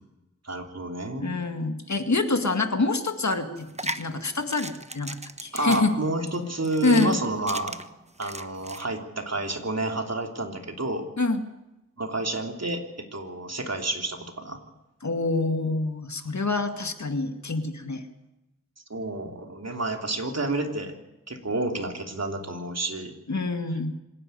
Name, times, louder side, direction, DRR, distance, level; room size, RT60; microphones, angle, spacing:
voice 1, 0.4-1.4 5.5-7.8 8.2-11.0 12.0-14.6 18.9-21.0 21.3-23.1, right 2 dB, 55° right, 3 dB, 3.2 m, -30 dB
voice 2, 1.2-6.0 6.8-7.2 11.2-11.4 15.0-18.0 23.3-23.9, left 3 dB, 65° left, 7 dB, 2.2 m, -26 dB
sound 1, 3.6-8.8, right 2 dB, 20° right, 1.1 m, -38 dB
26.0 x 11.0 x 9.3 m, 0.95 s
wide cardioid pair, 55°, 31 cm